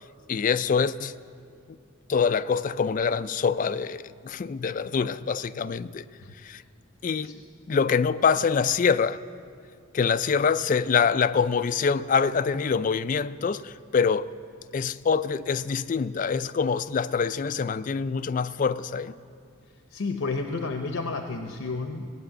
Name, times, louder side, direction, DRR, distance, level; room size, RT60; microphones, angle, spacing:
voice 1, 0.3-1.2 2.1-6.1 6.4-6.6 7.0-7.3 7.7-9.2 9.9-14.3 14.7-19.2, left 6 dB, 40° left, 0.3 m, -25 dB
voice 2, 19.9-22.1, left 3 dB, 85° left, 0.7 m, -31 dB
16.5 x 7.8 x 8.9 m
head